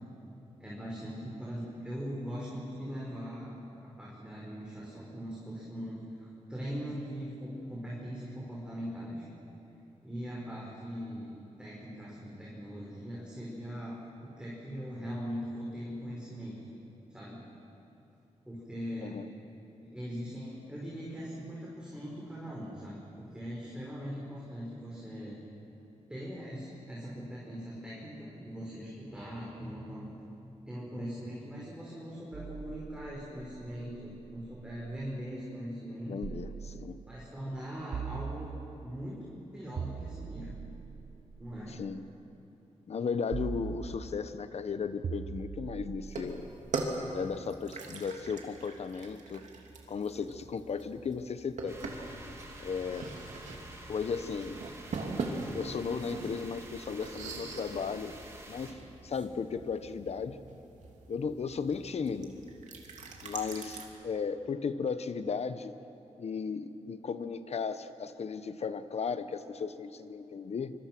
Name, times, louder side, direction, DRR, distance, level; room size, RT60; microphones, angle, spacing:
voice 1, 0.6-3.5 3.8-9.2 10.0-11.3 11.6-16.6 17.1-17.4 18.5-19.2 19.8-25.4 26.1-30.1 30.7-36.3 37.1-38.5 38.8-40.5 41.4-41.7, equal, 5° right, -6 dB, 5.2 m, -41 dB
sound 1, 32.3-35.1 36.2-37.3 37.9-39.0 39.8-42.0 43.3-44.4 45.0-47.2, right 6 dB, 60° right, 0.7 m, -42 dB
voice 2, 36.1-37.0 41.8-42.0 42.9-46.5 47.1-49.4 49.9-51.9 52.6-53.2 53.9-54.6 55.5-58.1 58.5-60.4 61.1-62.4 63.2-65.8 66.2-70.7, left 5 dB, 60° left, 11 dB, 1.1 m, -35 dB
sound 2, 46.0-63.9, right 3 dB, 85° right, 2.8 m, -42 dB
sound 3, 51.7-58.7, right 1 dB, 25° right, 3.2 m, -49 dB
25.5 x 24.5 x 6.2 m, 2.9 s
wide cardioid pair, 95°, 12 cm